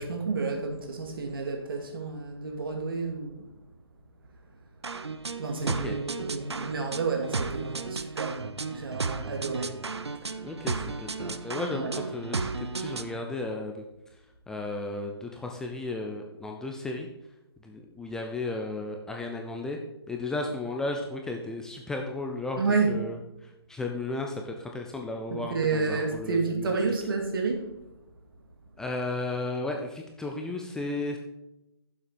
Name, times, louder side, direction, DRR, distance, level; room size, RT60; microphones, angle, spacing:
voice 1, 0.0-3.5 5.4-9.8 11.7-12.0 22.6-22.9 25.3-27.7, right 4 dB, 55° right, 2 dB, 2.3 m, -30 dB
sound 1, 4.8-13.2, right 4 dB, 90° right, 0.7 m, -34 dB
voice 2, 5.6-6.0 10.4-13.8 14.5-17.1 17.6-19.8 20.1-22.6 22.9-26.8 28.8-31.2, left 2 dB, 5° left, 2 dB, 0.4 m, -34 dB
9.9 x 7.3 x 4.3 m, 0.93 s
figure-of-eight pair, 145°, 14 cm